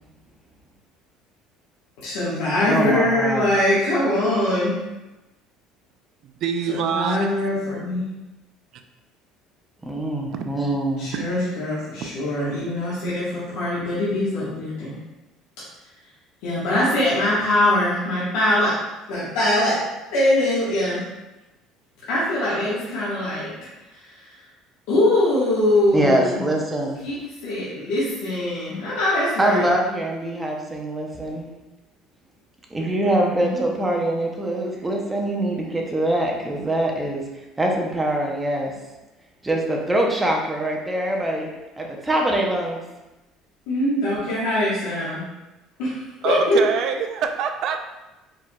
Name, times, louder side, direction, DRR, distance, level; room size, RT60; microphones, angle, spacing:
voice 1, 2.0-4.7 6.7-8.0 11.0-15.0 16.4-18.7 19.1-19.8 20.1-21.0 22.1-23.5 24.0-24.1 24.9-26.4 27.0-27.2 27.4-29.6 33.4-33.6 33.9-34.0 43.7-45.2 45.8-46.6, left 1 dB, 80° left, -9 dB, 1.4 m, -22 dB
voice 2, 2.7-3.4 9.8-11.1 25.9-27.0 29.4-31.5 32.7-37.3 37.6-38.7 39.4-42.8, right 1 dB, 10° right, 0 dB, 0.7 m, -23 dB
voice 3, 6.2-7.5 10.3-10.4 11.1-11.3 12.0-12.1 46.2-47.8, right 7 dB, 50° right, 7 dB, 0.4 m, -26 dB
4.7 x 4.4 x 2.3 m, 1.0 s
cardioid pair, 155°, 0 cm